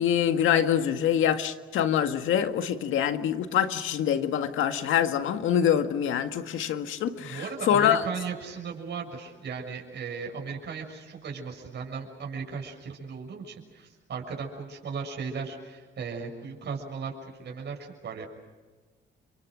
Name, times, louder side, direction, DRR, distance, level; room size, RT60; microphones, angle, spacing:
voice 1, 0.0-8.0, left 9 dB, 80° left, 7 dB, 1.9 m, -25 dB
voice 2, 7.2-17.1 17.4-18.3, right 5 dB, 60° right, 0 dB, 6.7 m, -36 dB
30.0 x 24.5 x 6.4 m, 1.4 s
cardioid pair, 90°, 20 cm